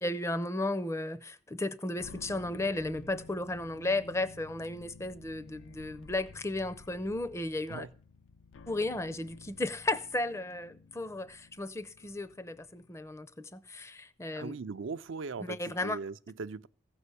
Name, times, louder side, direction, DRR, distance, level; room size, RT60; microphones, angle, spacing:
voice 1, 0.0-7.8 8.7-14.5 15.4-16.0, left 2 dB, 15° left, 0.5 m, -34 dB
sound 1, 2.0-13.4, left 4 dB, 75° left, 0.5 m, -53 dB
voice 2, 14.3-16.7, right 4 dB, 75° right, 0.5 m, -39 dB
15.0 x 5.5 x 8.2 m
head